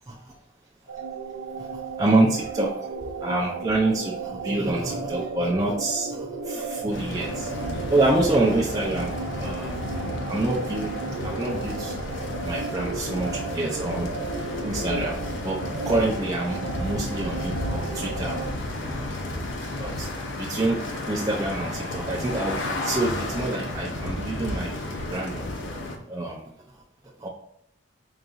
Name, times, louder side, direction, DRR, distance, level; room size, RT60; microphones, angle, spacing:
sound 1, 0.9-18.5, right 4 dB, 75° right, 0.5 m, -35 dB
voice 1, 1.6-2.7 3.2-10.0 10.3-10.9 11.2-12.0 12.2-15.6 15.9-18.4 19.8-25.5 26.1-26.4 27.2-27.3, right 2 dB, 15° right, -3 dB, 0.3 m, -27 dB
sound 2, 6.9-26.0, left 1 dB, 70° left, 0.6 m, -32 dB
3.9 x 2.3 x 3.8 m, 0.75 s
head